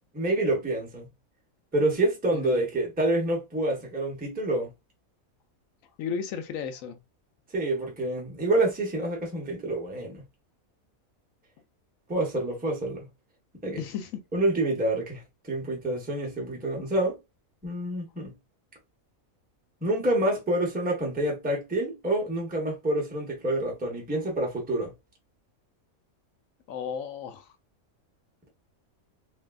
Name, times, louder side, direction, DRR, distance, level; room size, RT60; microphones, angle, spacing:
voice 1, 0.1-1.1 1.7-4.7 7.5-10.2 12.1-13.1 13.6-13.8 14.3-17.2 17.6-18.3 19.8-24.9, right 1 dB, 10° right, 0.7 m, -27 dB
voice 2, 6.0-7.0 13.8-14.2 26.7-27.5, left 7 dB, 75° left, 1.0 m, -34 dB
3.0 x 2.7 x 2.3 m
omnidirectional pair, 1.5 m